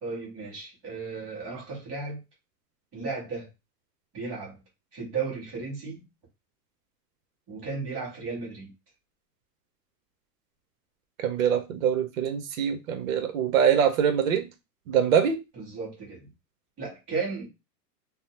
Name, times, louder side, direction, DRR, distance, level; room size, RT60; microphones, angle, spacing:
voice 1, 0.0-2.2 2.9-3.5 4.1-4.6 4.9-6.0 7.5-8.7 15.5-16.3 16.8-17.5, right 4 dB, 5° right, 0.4 m, -34 dB
voice 2, 11.2-14.5 14.9-15.4, right 8 dB, 55° right, 0.8 m, -24 dB
3.4 x 2.0 x 2.8 m
hypercardioid pair, 155°, 49 cm